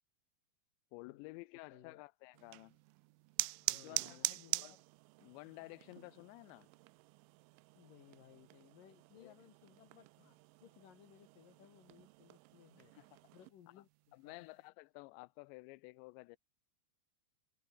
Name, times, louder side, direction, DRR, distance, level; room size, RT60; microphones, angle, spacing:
voice 1, 0.9-2.8 3.7-4.7 5.2-6.7 9.2-9.4 12.9-13.2 13.8-13.9 14.1-16.4, left 24 dB, 80° left, 2.6 m, -53 dB
voice 2, 1.7-2.0 3.6-4.8 7.7-12.9 13.3-14.5, left 9 dB, 60° left, 2.6 m, -62 dB
sound 1, 2.4-13.5, right 24 dB, 85° right, 3.0 m, -44 dB
omnidirectional pair, 5.5 m